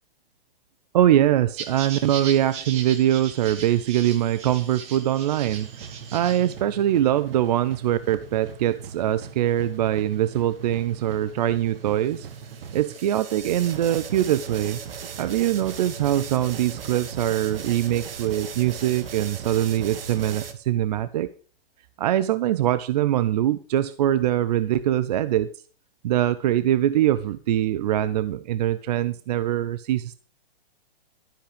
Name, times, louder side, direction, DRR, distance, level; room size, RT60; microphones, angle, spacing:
voice 1, 0.9-12.3 12.7-14.8 15.2-21.3 22.0-25.5 26.0-30.2, right 12 dB, 45° right, 16 dB, 0.5 m, -23 dB
sound 1, 1.6-6.5, right 7 dB, 20° right, 1.3 m, -38 dB
sound 2, 5.5-20.5, right 7 dB, 70° right, 1.9 m, -38 dB
12.0 x 10.0 x 5.2 m, 0.39 s
hypercardioid pair, 160°, 30 cm